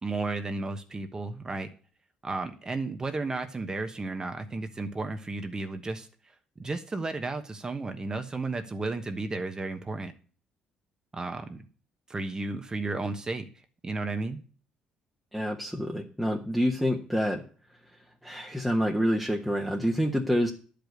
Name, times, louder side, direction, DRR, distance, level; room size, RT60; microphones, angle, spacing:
voice 1, 0.0-1.7 2.2-6.1 6.6-10.1 11.1-11.6 12.1-13.4 13.8-14.4, right 3 dB, 25° right, 7 dB, 1.2 m, -33 dB
voice 2, 15.3-17.4 18.2-20.5, equal, ahead, 1 dB, 1.4 m, -27 dB
10.5 x 5.2 x 8.0 m, 0.40 s
supercardioid pair, 80°, 3 cm